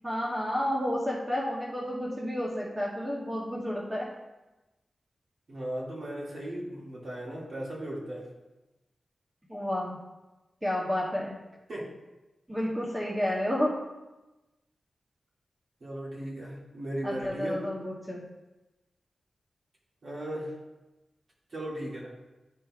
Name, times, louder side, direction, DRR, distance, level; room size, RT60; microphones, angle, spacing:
voice 1, 0.0-4.1 9.5-10.0 10.6-11.3 12.5-13.8 17.0-18.2, left 1 dB, 10° right, -4 dB, 0.9 m, -31 dB
voice 2, 5.5-8.3 11.7-11.9 15.8-17.6 20.0-20.5 21.5-22.1, right 1 dB, 55° right, -6 dB, 2.1 m, -36 dB
11.5 x 4.5 x 2.4 m, 1.1 s
wide cardioid pair, 150°, 0 cm